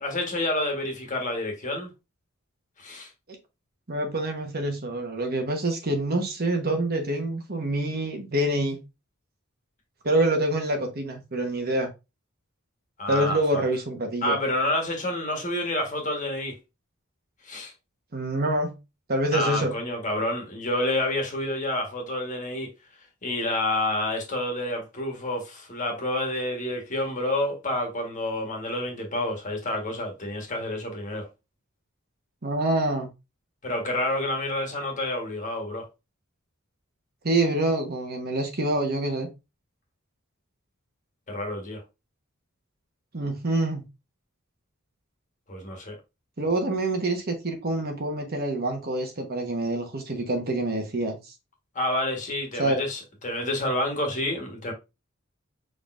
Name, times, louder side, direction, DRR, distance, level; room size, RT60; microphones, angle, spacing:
voice 1, 0.0-1.9 2.8-3.1 13.0-13.6 14.2-16.6 17.4-17.7 19.3-22.7 23.2-31.3 33.6-35.9 41.3-41.8 45.5-46.0 51.7-54.7, left 1 dB, 40° left, 1.4 m, -29 dB
voice 2, 3.9-8.8 10.0-11.9 13.1-14.4 18.1-18.7 19.1-19.7 32.4-33.1 37.2-39.3 43.1-43.8 46.4-51.2 52.6-52.8, right 1 dB, 50° right, 1.2 m, -26 dB
5.3 x 4.0 x 2.5 m
head